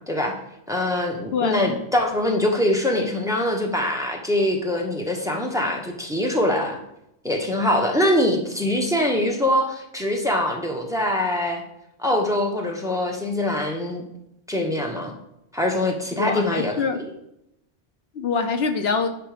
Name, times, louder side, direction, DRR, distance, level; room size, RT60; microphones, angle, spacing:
voice 1, 0.7-6.8 7.2-11.6 12.0-14.0 14.5-15.1 15.5-17.1, left 1 dB, 5° right, 1 dB, 1.2 m, -23 dB
voice 2, 1.3-1.8 16.2-17.0 18.1-19.1, left 5 dB, 70° left, 7 dB, 1.0 m, -24 dB
10.0 x 5.0 x 5.1 m, 0.81 s
omnidirectional pair, 1.1 m